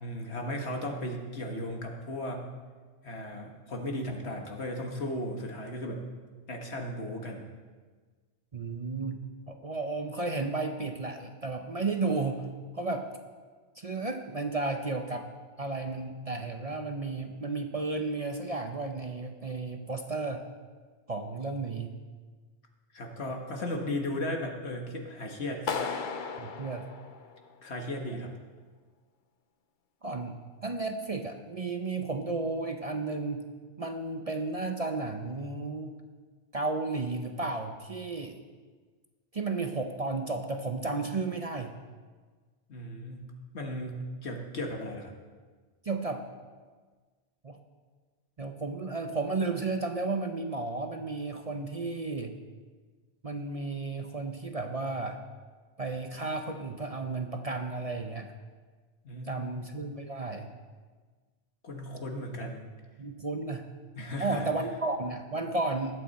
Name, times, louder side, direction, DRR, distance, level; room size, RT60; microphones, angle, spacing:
voice 1, 0.0-2.5 3.0-6.1 6.5-7.5 22.9-26.1 27.6-28.3 42.7-43.2 43.5-45.1 59.0-59.7 61.6-62.6 64.0-64.5, left 1 dB, 70° left, 2 dB, 1.8 m, -36 dB
voice 2, 8.5-9.2 9.5-12.5 12.7-13.1 13.8-15.3 15.6-20.4 21.1-21.9 26.4-26.9 30.0-30.4 30.6-33.4 33.8-35.9 36.5-38.4 39.3-41.7 45.8-46.3 47.4-47.6 48.4-52.3 53.2-55.2 55.8-58.3 59.3-60.5 63.0-63.7 64.2-66.0, right 3 dB, 35° right, 5 dB, 0.8 m, -33 dB
Clapping, 25.7-27.7, left 5 dB, 50° left, 0.8 m, -35 dB
20.5 x 8.6 x 4.2 m, 1.5 s
omnidirectional pair, 1.2 m